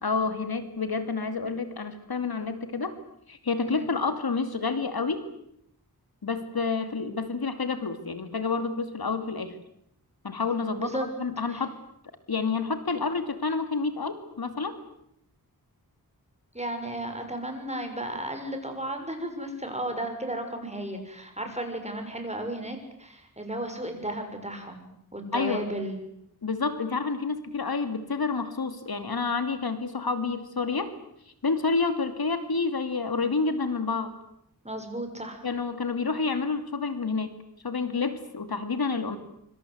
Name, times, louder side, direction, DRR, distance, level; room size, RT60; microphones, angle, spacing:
voice 1, 0.0-2.9 3.3-5.2 6.2-9.6 10.2-11.7 12.3-14.8 25.3-25.6 26.4-30.9 31.4-34.1 35.4-37.3 37.6-39.2, left 4 dB, 70° left, 9 dB, 2.6 m, -29 dB
voice 2, 16.5-24.9 25.1-26.0 34.6-35.4, right 1 dB, 15° right, 5 dB, 6.6 m, -34 dB
25.5 x 25.0 x 8.0 m, 0.74 s
wide cardioid pair, 80°, 38 cm